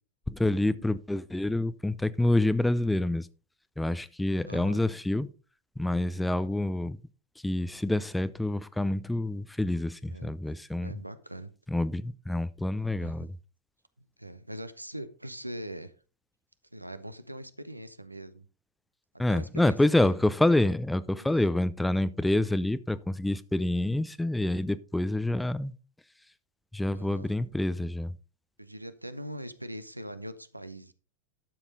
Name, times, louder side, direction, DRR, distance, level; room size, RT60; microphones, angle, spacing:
voice 1, 0.3-3.3 3.8-5.3 5.8-7.0 7.4-10.9 11.7-13.3 19.2-25.7 26.7-28.1, left 1 dB, 5° left, 0.5 m, -27 dB
voice 2, 4.5-4.8 10.1-10.3 10.8-11.5 13.0-13.3 14.0-15.9 16.7-18.5 19.3-20.2 21.1-21.3 26.9-27.3 28.6-30.9, right 1 dB, 85° right, 0.9 m, -42 dB
12.0 x 7.3 x 3.9 m
figure-of-eight pair, 90°, 0 cm